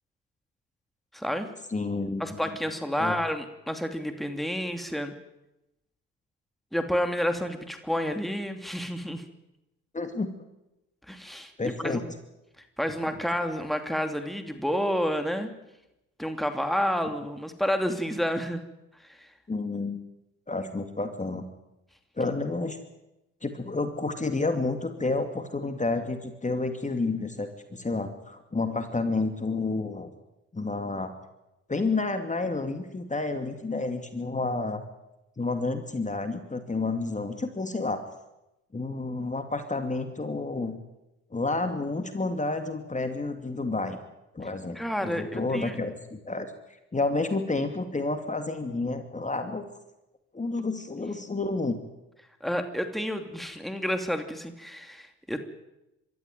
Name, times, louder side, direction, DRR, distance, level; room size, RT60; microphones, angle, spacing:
voice 1, 1.1-1.5 2.2-5.1 6.7-9.2 11.1-12.0 12.8-15.5 16.2-18.6 19.0-19.3 44.7-45.8 50.6-50.7 52.4-55.4, equal, ahead, 6 dB, 2.8 m, -30 dB
voice 2, 1.7-2.4 3.0-3.1 9.9-10.3 11.6-12.0 13.1-13.2 19.5-20.0 20.5-21.4 22.2-22.8 23.4-30.1 30.5-31.1 31.7-34.8 35.4-38.0 38.7-40.8 41.3-44.0 44.3-46.5 46.9-49.6 50.3-51.8, left 3 dB, 25° left, 7 dB, 2.5 m, -30 dB
24.0 x 13.5 x 9.2 m, 0.93 s
supercardioid pair, 60°, 32 cm